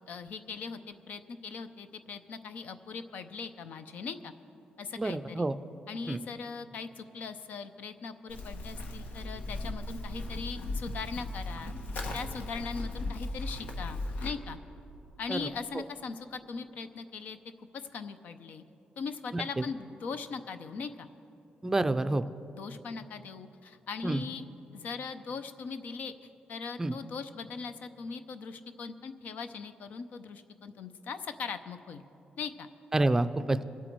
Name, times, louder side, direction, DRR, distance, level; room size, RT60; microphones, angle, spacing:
voice 1, 0.1-4.3 4.8-5.5 5.9-11.7 12.1-14.6 15.2-18.6 19.0-21.1 22.3-24.5 24.7-26.1 26.5-32.0 32.4-32.7, left 5 dB, 70° left, 10 dB, 0.7 m, -40 dB
voice 2, 5.0-5.5 6.1-6.2 15.3-15.4 19.3-19.4 21.6-22.2 24.0-24.2 26.8-26.9 32.9-33.6, right 2 dB, 15° right, 11 dB, 0.4 m, -28 dB
Livestock farm animals working animals, 8.3-14.3, left 2 dB, 85° left, 1.3 m, -37 dB
24.0 x 8.3 x 4.6 m, 2.8 s
wide cardioid pair, 140°, 3 cm